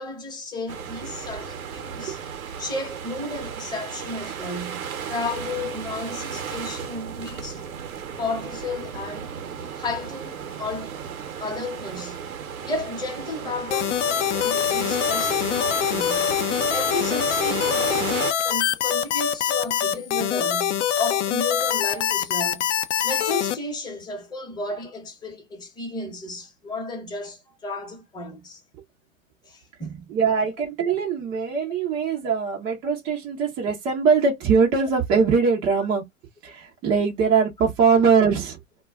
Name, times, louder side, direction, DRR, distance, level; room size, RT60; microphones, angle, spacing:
voice 1, 0.0-2.2 2.6-7.6 8.2-9.3 9.8-11.0 11.4-12.2 12.7-16.4 16.7-22.7 23.0-28.6 29.4-30.1, left 3 dB, 10° left, 0.8 m, -33 dB
sound 1, 0.7-18.3, right 7 dB, 85° right, 0.7 m, -34 dB
sound 2, 13.7-23.6, left 9 dB, 60° left, 0.5 m, -24 dB
voice 2, 30.1-36.0 36.4-38.6, right 5 dB, 15° right, 0.4 m, -21 dB
2.2 x 2.1 x 3.3 m
hypercardioid pair, 125°, 41 cm